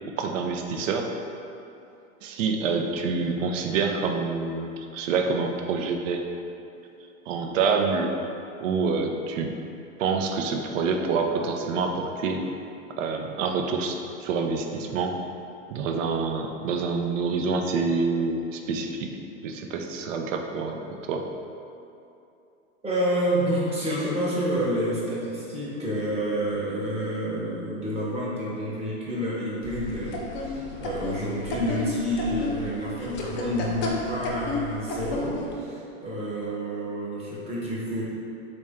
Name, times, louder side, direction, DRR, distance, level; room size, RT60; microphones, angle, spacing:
voice 1, 0.2-1.1 2.2-6.2 7.3-8.1 8.6-9.5 10.0-12.4 13.0-15.2 15.7-19.1 19.4-20.8 21.1-21.3, right 4 dB, 70° right, 3 dB, 0.5 m, -27 dB
voice 2, 22.8-38.0, equal, 15° right, -7 dB, 0.8 m, -29 dB
sound 1, 29.6-35.6, left 2 dB, 30° left, 0.4 m, -32 dB
3.2 x 2.5 x 3.5 m, 2.8 s
hypercardioid pair, 115°, 39 cm